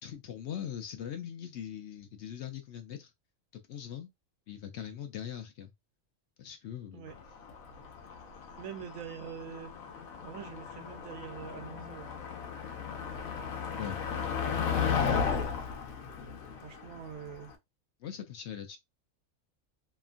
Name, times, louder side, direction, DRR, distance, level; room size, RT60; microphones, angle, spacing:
voice 1, 0.0-3.1 3.7-4.1 4.5-5.7 6.4-7.2 13.7-14.0 18.0-18.8, left 9 dB, 65° left, 0.8 m, -41 dB
Motor vehicle (road), 7.2-17.5, left 6 dB, 90° left, 1.1 m, -35 dB
voice 2, 8.6-9.7 10.2-12.1 16.6-17.5, right 8 dB, 75° right, 1.0 m, -44 dB
2.9 x 2.4 x 2.4 m
omnidirectional pair, 1.4 m